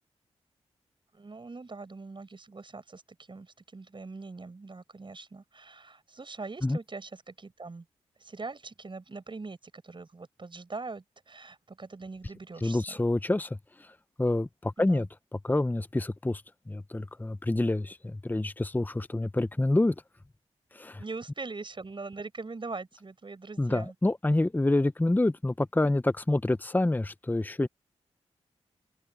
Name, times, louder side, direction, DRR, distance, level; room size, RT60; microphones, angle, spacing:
voice 1, 1.1-3.0 3.3-7.9 8.2-13.0 14.8-15.1 21.0-23.9, right 3 dB, 45° right, 6.1 m, -42 dB
voice 2, 12.6-13.9 14.2-15.1 15.4-16.4 16.7-19.9 20.7-21.0 23.6-27.7, left 2 dB, 15° left, 0.8 m, -27 dB
open air
cardioid pair, 45°, 12 cm